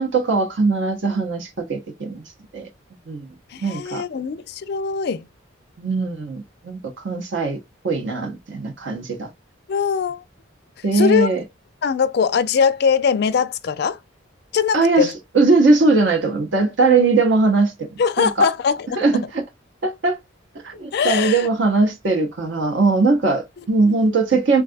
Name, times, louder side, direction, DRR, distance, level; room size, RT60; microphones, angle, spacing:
voice 1, 0.0-2.2 2.5-2.7 3.1-3.3 3.6-4.0 5.8-7.6 7.8-9.3 10.8-11.4 14.7-17.9 18.2-18.5 19.0-19.4 19.8-20.2 20.6-24.6, right 3 dB, 65° right, 0.6 m, -20 dB
voice 2, 3.5-5.3 9.7-10.2 10.9-11.3 11.8-14.0 14.5-15.1 18.0-19.0 20.9-21.5 23.8-24.1, left 6 dB, 55° left, 0.3 m, -21 dB
3.5 x 2.3 x 2.4 m
head